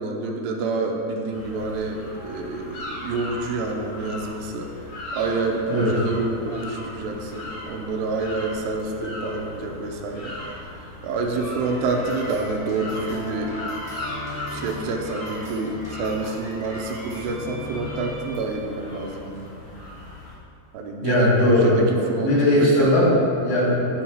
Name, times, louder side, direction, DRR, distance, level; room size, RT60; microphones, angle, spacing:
voice 1, 0.0-4.7 5.1-10.3 10.7-13.6 14.5-19.5 20.7-23.0, right 3 dB, 85° right, 2 dB, 2.9 m, -28 dB
sound 1, 1.3-20.3, left 1 dB, 50° left, 2.0 m, -38 dB
sound 2, 11.7-18.6, left 2 dB, 55° right, 0.8 m, -37 dB
voice 2, 21.0-21.8 22.1-24.0, left 1 dB, 70° left, -7 dB, 4.3 m, -19 dB
11.5 x 5.4 x 4.5 m, 2.8 s
omnidirectional pair, 5.0 m